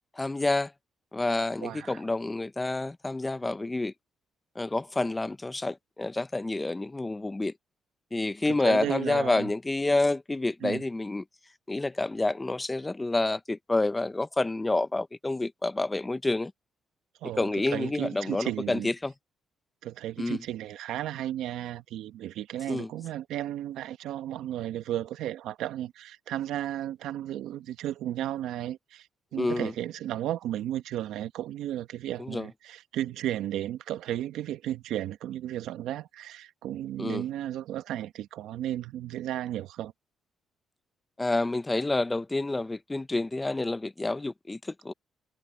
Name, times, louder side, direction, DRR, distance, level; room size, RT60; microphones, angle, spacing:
voice 1, 0.2-0.7 1.1-3.9 4.5-7.5 8.1-11.2 11.7-16.5 17.4-19.1 20.2-20.4 22.7-22.9 29.3-29.7 32.2-32.5 37.0-37.2 41.2-44.9, left 2 dB, 15° left, 0.9 m, -28 dB
voice 2, 1.6-2.0 8.5-9.5 10.6-10.8 17.2-18.9 19.8-29.1 29.3-39.9, right 12 dB, 85° right, 1.2 m, -34 dB
cardioid pair, 90°, 0 cm